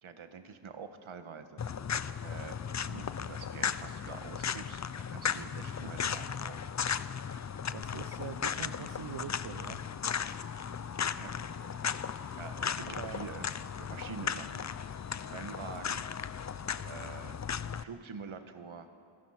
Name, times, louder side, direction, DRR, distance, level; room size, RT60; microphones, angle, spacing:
voice 1, 0.0-1.8 2.2-6.6 11.2-11.3 12.4-13.5 13.7-14.6 15.2-16.1 16.8-17.5 17.7-18.9, right 5 dB, 85° right, 8 dB, 1.5 m, -46 dB
sound 1, 1.6-17.8, left 7 dB, 40° left, 0.5 m, -36 dB
voice 2, 7.7-9.9 12.9-13.3, right 8 dB, 70° right, 8 dB, 0.9 m, -43 dB
27.0 x 21.5 x 5.9 m, 2.4 s
wide cardioid pair, 145°, 47 cm